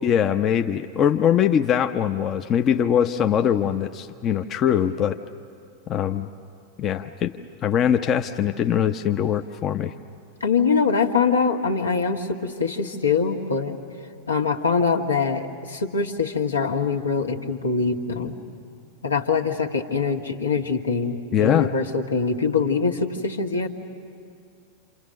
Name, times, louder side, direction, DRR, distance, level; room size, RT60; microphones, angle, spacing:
voice 1, 0.0-5.2 5.9-6.3 6.8-7.3 7.6-9.9 21.3-21.7, left 9 dB, 30° left, 7 dB, 0.7 m, -22 dB
voice 2, 10.4-13.8 14.3-18.3 19.0-23.7, left 5 dB, 75° left, 3 dB, 1.8 m, -23 dB
28.0 x 27.5 x 6.6 m, 2.3 s
figure-of-eight pair, 90°, 0 cm